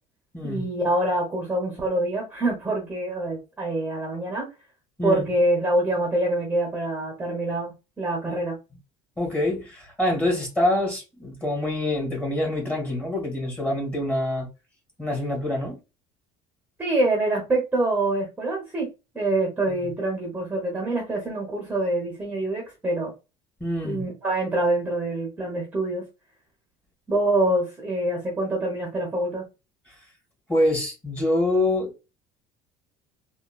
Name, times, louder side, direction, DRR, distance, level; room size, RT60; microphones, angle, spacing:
voice 1, 0.4-4.5 5.0-8.6 16.8-18.9 19.1-23.1 23.8-26.0 27.1-29.4, right 1 dB, 10° right, 0.8 m, -25 dB
voice 2, 9.2-14.5 15.0-15.8 19.7-19.8 23.6-24.0 29.9-30.0 30.5-32.0, left 1 dB, 10° left, 1.6 m, -25 dB
3.6 x 2.3 x 2.3 m
cardioid pair, 165°, 14 cm